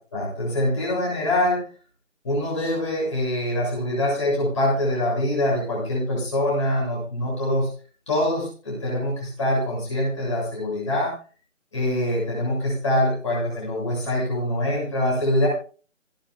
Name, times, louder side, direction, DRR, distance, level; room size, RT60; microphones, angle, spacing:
voice 1, 0.1-1.6 2.2-7.7 8.1-11.1 11.7-15.5, left 1 dB, 25° left, -5 dB, 6.9 m, -24 dB
27.0 x 9.4 x 2.3 m, 0.38 s
figure-of-eight pair, 175°, 38 cm